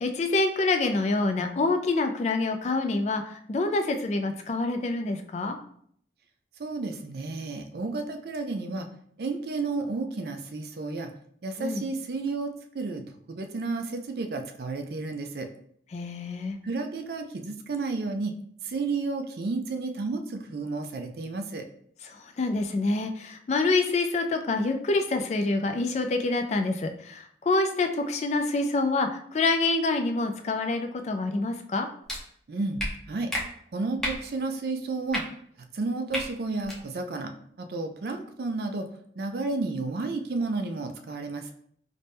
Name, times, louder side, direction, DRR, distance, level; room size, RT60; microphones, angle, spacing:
voice 1, 0.0-5.6 11.6-11.8 15.9-16.6 22.0-31.9, left 3 dB, 40° left, 6 dB, 0.3 m, -26 dB
voice 2, 6.6-8.9 9.2-11.1 11.4-15.5 16.6-18.3 18.6-21.7 32.5-32.8 33.1-33.3 33.7-35.2 35.7-37.3 37.6-38.9 39.2-41.5, right 3 dB, 60° right, 6 dB, 0.4 m, -32 dB
sound 1, 32.1-32.2 32.8-32.9 33.3-33.4 34.0-34.2 35.1-35.2 36.1-36.2 36.6-36.8, equal, ahead, 0.6 m, -30 dB
4.0 x 2.2 x 3.3 m, 0.64 s
head